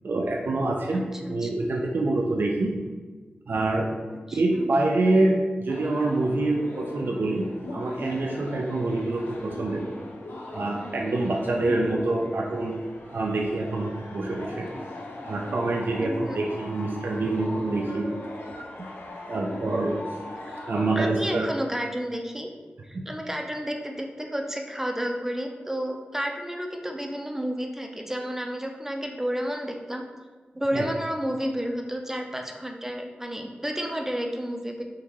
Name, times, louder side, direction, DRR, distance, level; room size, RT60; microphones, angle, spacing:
voice 1, 0.0-2.8 3.5-3.9 4.3-7.5 7.7-9.9 10.5-12.8 13.1-14.7 15.2-18.1 18.8-18.9 19.3-19.9 20.7-21.5 22.9-23.0 30.7-30.9, right 2 dB, 60° right, -1 dB, 0.4 m, -26 dB
voice 2, 0.9-1.5 4.3-4.7 16.0-16.4 20.4-20.7 21.0-22.5 22.8-30.0 30.6-34.8, equal, 10° right, 2 dB, 0.5 m, -31 dB
sound 1, 5.7-21.0, left 1 dB, 75° left, 0.5 m, -39 dB
3.7 x 2.6 x 2.9 m, 1.4 s
cardioid pair, 45°, 4 cm